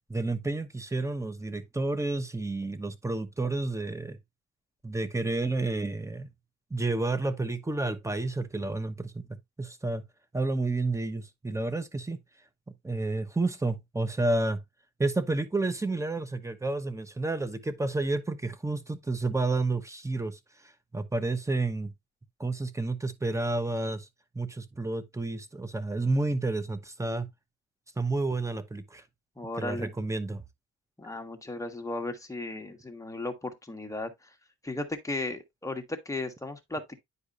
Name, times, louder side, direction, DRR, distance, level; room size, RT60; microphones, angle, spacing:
voice 1, 0.1-4.2 4.8-6.3 6.7-9.3 9.6-10.1 10.3-12.2 12.8-14.6 15.0-20.4 20.9-21.9 22.4-24.1 24.3-27.3 28.0-29.0 29.6-30.4, right 2 dB, 10° right, 1.0 m, -30 dB
voice 2, 29.4-29.9 31.0-34.3 34.6-37.0, left 2 dB, 10° left, 1.5 m, -35 dB
9.6 x 4.9 x 2.5 m
cardioid pair, 90°, 30 cm